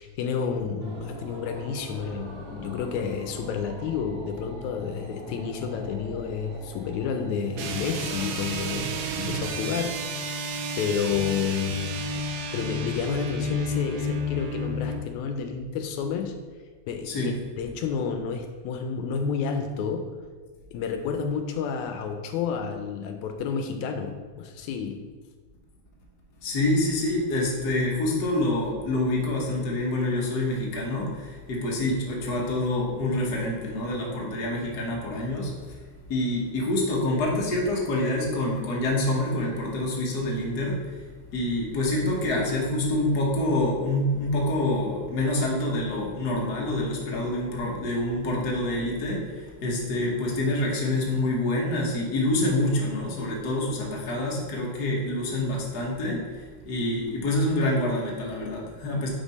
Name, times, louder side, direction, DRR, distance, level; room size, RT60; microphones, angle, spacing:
voice 1, 0.0-10.4 10.8-16.3 16.9-20.1 20.7-25.1, left 6 dB, 80° left, 5 dB, 1.9 m, -30 dB
sound 1, 0.8-9.1, right 1 dB, 70° right, 0.9 m, -43 dB
sound 2, 7.5-15.1, equal, 90° right, 2.1 m, -31 dB
voice 2, 26.4-35.8 36.1-59.1, left 1 dB, 65° left, -3 dB, 1.0 m, -27 dB
5.4 x 5.1 x 4.0 m, 1.5 s
omnidirectional pair, 3.4 m